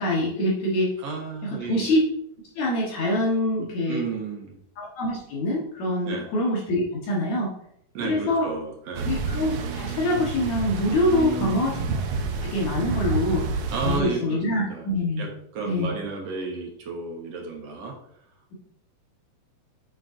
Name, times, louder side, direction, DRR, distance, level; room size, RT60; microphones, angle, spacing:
voice 1, 0.0-0.9 1.4-2.0 2.6-4.0 4.8-7.5 8.0-8.5 9.0-11.8 12.4-13.5 13.8-15.3 15.6-15.9, left 1 dB, 70° left, -4 dB, 2.5 m, -25 dB
voice 2, 1.0-1.9 3.9-4.6 6.0-6.3 7.9-9.1 11.1-11.7 13.7-14.9 15.2-15.3 15.5-17.9, right 4 dB, 65° right, 0 dB, 2.0 m, -32 dB
sound 1, 8.9-14.0, right 4 dB, 85° right, 1.2 m, -29 dB
8.3 x 6.3 x 2.5 m, 0.73 s
omnidirectional pair, 3.5 m